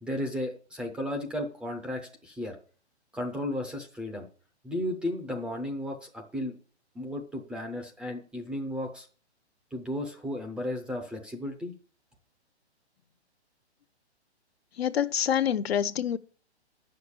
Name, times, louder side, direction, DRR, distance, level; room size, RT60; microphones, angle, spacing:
voice 1, 0.0-2.6 3.1-4.3 4.6-6.5 6.9-9.1 9.7-11.7, left 1 dB, 5° right, 0.6 m, -34 dB
voice 2, 14.8-16.2, left 9 dB, 65° left, 0.8 m, -26 dB
9.4 x 6.6 x 7.0 m
hypercardioid pair, 150°, 34 cm